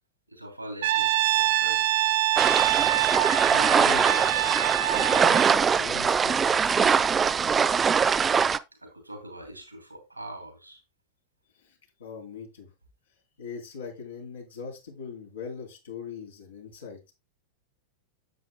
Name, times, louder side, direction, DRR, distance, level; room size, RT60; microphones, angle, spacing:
voice 1, 0.3-2.1 8.8-10.8, right 1 dB, 85° right, 2.9 m, -43 dB
Brass instrument, 0.8-5.7, right 13 dB, 60° right, 0.8 m, -25 dB
sound 1, 2.4-8.6, right 6 dB, 20° right, 0.4 m, -22 dB
voice 2, 3.1-4.5 4.9-7.5 11.6-12.7 13.4-17.1, left 5 dB, 65° left, 3.5 m, -40 dB
10.0 x 8.4 x 2.2 m
figure-of-eight pair, 90°, 0 cm